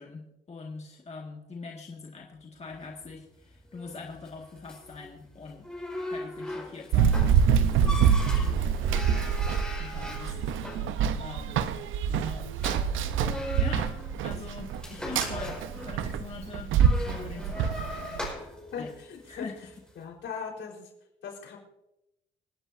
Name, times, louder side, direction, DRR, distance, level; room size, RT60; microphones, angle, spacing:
voice 1, 0.0-5.7 6.1-9.3 9.8-10.9 11.2-11.7 12.1-12.5 13.5-13.9 14.2-17.8 18.8-18.9 19.3-19.6, left 4 dB, 35° left, -1 dB, 1.9 m, -43 dB
sound 1, 2.7-19.9, left 1 dB, 5° left, 5.2 m, -41 dB
Run, 6.9-18.3, right 7 dB, 85° right, 0.8 m, -26 dB
voice 2, 18.7-19.5 20.0-20.9 21.2-21.6, left 6 dB, 70° left, -1 dB, 4.4 m, -39 dB
27.0 x 9.7 x 2.7 m, 0.91 s
cardioid pair, 90°, 20 cm